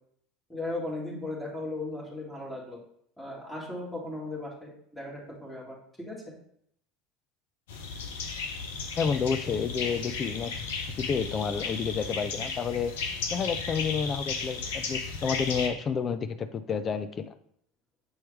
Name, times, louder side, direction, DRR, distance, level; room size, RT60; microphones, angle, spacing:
voice 1, 0.5-2.8 3.2-6.2, left 2 dB, 5° left, -6 dB, 2.2 m, -37 dB
sound 1, 7.7-15.7, left 5 dB, 75° left, 0.9 m, -34 dB
voice 2, 9.0-10.5 11.0-12.9 13.3-17.3, left 6 dB, 35° left, 11 dB, 0.5 m, -30 dB
7.2 x 4.5 x 3.4 m, 0.68 s
hypercardioid pair, 80°, 0 cm